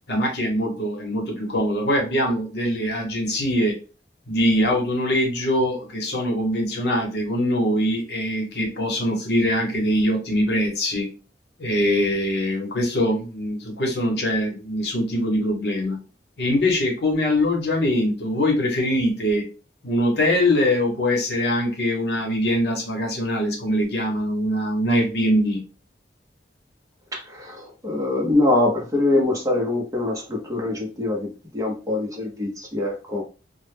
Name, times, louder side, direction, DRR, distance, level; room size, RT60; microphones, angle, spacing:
voice 1, 0.1-3.8 4.3-11.1 11.6-16.0 16.4-19.5 19.8-25.6, left 1 dB, 70° left, 0 dB, 0.8 m, -23 dB
voice 2, 27.1-33.2, left 2 dB, 20° right, -1 dB, 0.6 m, -24 dB
2.0 x 2.0 x 3.2 m, 0.34 s
head